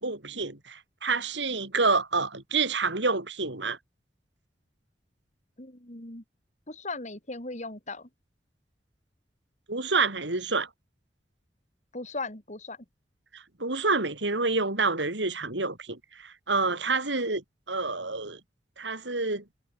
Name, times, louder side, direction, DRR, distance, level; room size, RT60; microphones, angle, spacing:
voice 1, 0.0-3.8 9.7-10.7 13.3-18.4 18.8-19.4, right 3 dB, 85° right, 4.7 m, -28 dB
voice 2, 5.6-6.2 6.7-8.1 11.9-12.8, left 3 dB, 40° left, 4.4 m, -38 dB
head